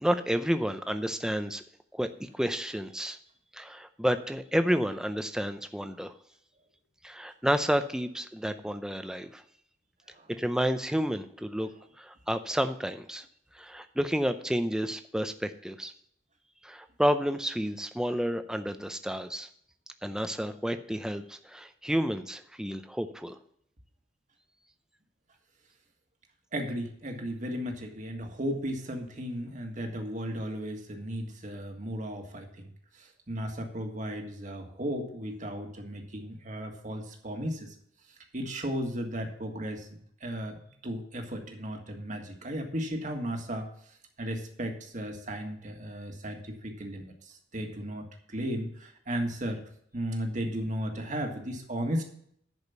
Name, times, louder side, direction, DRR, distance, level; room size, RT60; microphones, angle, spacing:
voice 1, 0.0-1.6 1.9-3.2 3.5-6.1 7.0-9.4 10.3-11.7 12.0-13.2 13.5-15.9 16.6-19.5 20.0-23.4, equal, 5° right, 9 dB, 0.6 m, -30 dB
voice 2, 26.5-37.7 38.3-49.6 49.9-52.0, equal, 40° right, 3 dB, 1.7 m, -35 dB
10.5 x 5.1 x 7.0 m, 0.66 s
head